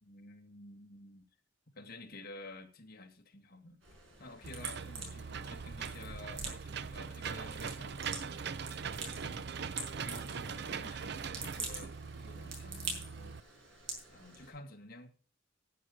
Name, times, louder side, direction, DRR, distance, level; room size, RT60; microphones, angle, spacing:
voice 1, 0.0-1.3 1.7-3.8 4.2-8.2 8.8-13.4 14.1-15.1, left 2 dB, 50° left, 1.9 m, -52 dB
sound 1, 3.8-14.5, right 3 dB, 85° right, 5.3 m, -46 dB
Engine / Mechanisms, 4.4-13.4, right 6 dB, 60° right, 0.6 m, -41 dB
11.0 x 9.4 x 5.0 m
head